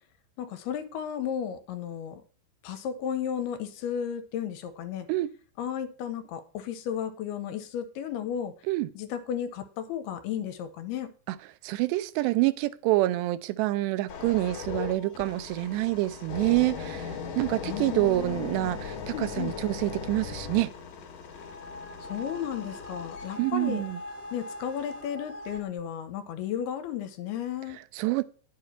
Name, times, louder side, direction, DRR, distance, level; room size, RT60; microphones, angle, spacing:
voice 1, 0.4-2.2 2.6-5.1 5.6-8.5 8.9-11.1 17.6-18.7 19.1-19.6 22.0-23.8 24.3-27.8, left 9 dB, 80° left, 2.8 m, -34 dB
voice 2, 11.6-20.7 23.4-24.0 28.0-28.2, right 18 dB, 90° right, 2.8 m, -27 dB
sound 1, 14.1-25.0 25.6-25.8, left 6 dB, 60° left, 2.4 m, -39 dB
sound 2, 21.3-25.6, left 1 dB, 5° left, 1.0 m, -42 dB
10.5 x 7.6 x 4.4 m
omnidirectional pair, 4.8 m